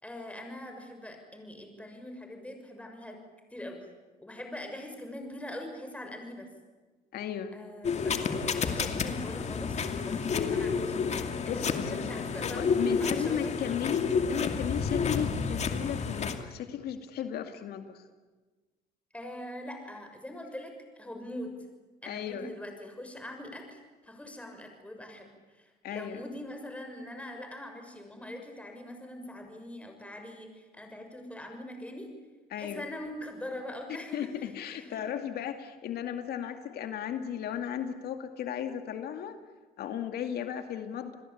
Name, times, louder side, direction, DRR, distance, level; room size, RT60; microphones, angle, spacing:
voice 1, 0.0-3.2 3.5-3.8 4.2-6.5 7.5-8.1 8.4-11.1 11.4-12.7 13.0-13.5 19.1-21.5 22.0-32.1 32.6-34.3 34.7-35.0, left 1 dB, 5° left, 4 dB, 6.5 m, -42 dB
voice 2, 7.1-7.6 11.5-12.0 12.5-18.0 22.0-22.5 25.8-26.2 32.5-32.8 34.1-39.4 39.8-41.2, left 9 dB, 70° left, 7 dB, 2.4 m, -35 dB
sound 1, 7.8-16.4, left 5 dB, 40° left, 2.5 m, -30 dB
29.5 x 21.0 x 8.7 m, 1.3 s
cardioid pair, 110°, 17 cm